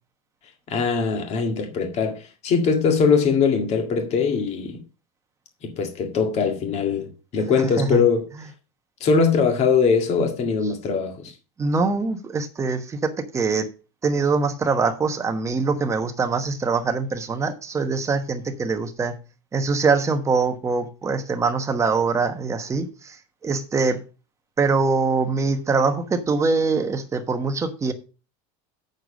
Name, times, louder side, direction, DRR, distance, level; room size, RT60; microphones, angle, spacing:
voice 1, 0.7-4.8 5.6-8.2 9.0-11.3, left 5 dB, 35° left, 1.9 m, -21 dB
voice 2, 11.6-13.7 14.0-19.2 19.5-23.2 23.4-24.0 24.6-27.9, right 4 dB, 15° right, 1.1 m, -23 dB
8.1 x 6.7 x 5.0 m
supercardioid pair, 155°, 19 cm